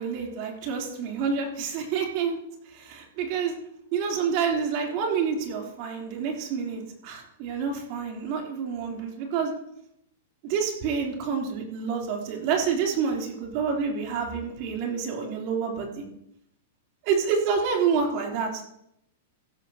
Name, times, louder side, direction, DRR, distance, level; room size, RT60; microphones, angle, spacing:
voice 1, 0.0-2.4 2.6-3.5 3.9-9.5 10.4-16.1 17.0-18.6, right 6 dB, 50° right, 1 dB, 3.4 m, -28 dB
16.0 x 12.0 x 2.9 m, 0.77 s
hypercardioid pair, 115°, 0 cm